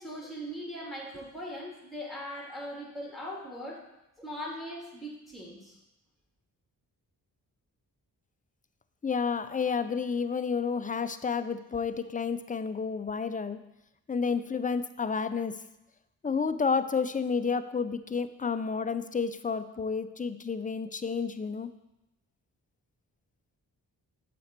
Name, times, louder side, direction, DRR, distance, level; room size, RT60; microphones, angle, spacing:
voice 1, 0.0-3.8 4.2-5.8, equal, ahead, -3 dB, 3.0 m, -40 dB
voice 2, 9.0-13.6 14.1-15.5 16.2-21.7, left 5 dB, 20° left, 11 dB, 0.5 m, -30 dB
7.0 x 5.1 x 4.5 m, 0.90 s
supercardioid pair, 40°, 41 cm